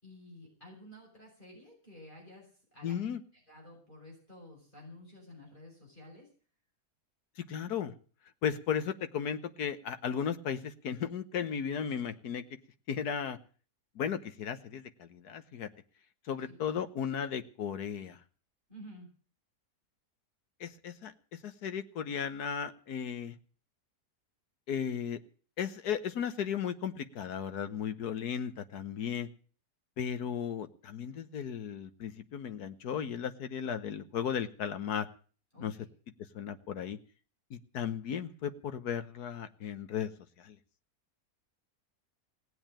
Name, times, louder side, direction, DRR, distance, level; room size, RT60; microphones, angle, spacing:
voice 1, 0.0-3.0 3.3-6.3 16.4-16.6 18.7-19.1 35.5-35.9, left 1 dB, 30° left, -1 dB, 5.9 m, -52 dB
voice 2, 2.8-3.2 7.4-7.9 8.4-12.4 12.9-13.4 13.9-15.7 16.3-18.2 20.6-23.4 24.7-25.2 25.6-29.3 30.0-35.1 35.6-35.7 36.3-37.0 37.5-40.1 40.4-40.6, left 8 dB, 80° left, 10 dB, 1.7 m, -35 dB
18.5 x 7.9 x 8.9 m, 0.42 s
omnidirectional pair, 1.7 m